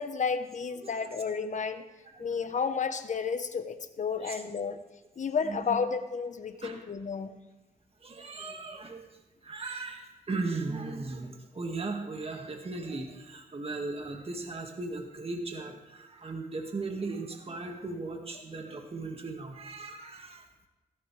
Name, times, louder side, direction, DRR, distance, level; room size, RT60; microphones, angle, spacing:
voice 1, 0.0-1.9 2.2-4.8 5.2-7.4, left 5 dB, 55° left, 9 dB, 1.1 m, -32 dB
voice 2, 2.1-2.4 4.2-4.4 5.5-5.8 6.6-6.8 8.0-9.0 9.4-20.4, right 3 dB, 40° right, 2 dB, 2.0 m, -37 dB
15.5 x 14.5 x 3.4 m, 1.1 s
cardioid pair, 65°, 15 cm